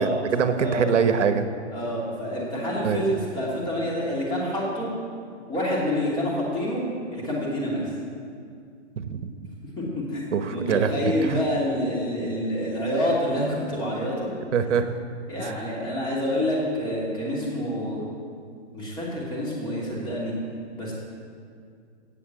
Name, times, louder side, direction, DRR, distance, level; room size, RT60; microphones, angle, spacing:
voice 1, 0.0-1.5 2.8-3.0 9.0-9.3 10.3-11.4 14.5-14.9 15.4-15.5, right 6 dB, 75° right, 9 dB, 1.1 m, -24 dB
voice 2, 1.7-4.9 5.5-6.8 7.1-7.9 9.8-14.3 15.3-18.0 18.7-20.3 20.8-20.9, equal, 15° left, -5 dB, 2.7 m, -27 dB
17.5 x 7.1 x 7.5 m, 2.3 s
hypercardioid pair, 170°, 36 cm